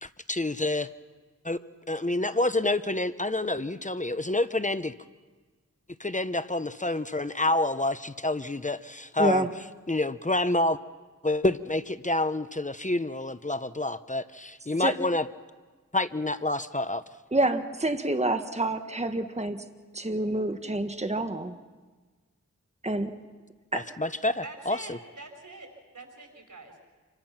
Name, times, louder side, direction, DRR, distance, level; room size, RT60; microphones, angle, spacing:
voice 1, 0.0-0.9 1.4-1.6 1.9-4.9 6.0-9.5 9.9-10.8 11.2-15.3 15.9-17.0 24.0-25.0, left 2 dB, 25° left, 12 dB, 0.9 m, -28 dB
voice 2, 9.2-9.5 14.8-14.9 17.3-19.6 19.9-21.5 22.8-23.2 23.7-23.8, right 2 dB, 20° right, 7 dB, 1.5 m, -27 dB
voice 3, 24.4-26.8, right 2 dB, 90° right, 3 dB, 4.7 m, -45 dB
27.5 x 24.5 x 5.9 m, 1.4 s
wide cardioid pair, 50°, 30 cm